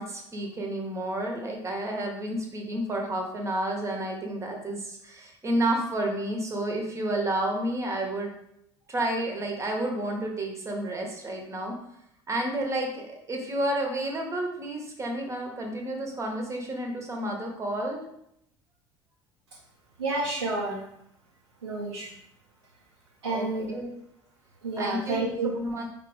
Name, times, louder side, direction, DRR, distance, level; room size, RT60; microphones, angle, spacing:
voice 1, 0.0-8.3 8.9-11.7 12.3-18.0 23.2-23.9 24.8-25.2 25.6-25.9, right 1 dB, 20° right, 1 dB, 1.1 m, -30 dB
voice 2, 20.0-20.8 21.6-22.1 23.2-23.7 24.6-25.6, right 2 dB, 80° right, -4 dB, 0.7 m, -29 dB
4.6 x 3.3 x 3.5 m, 0.76 s
figure-of-eight pair, 65°, 14 cm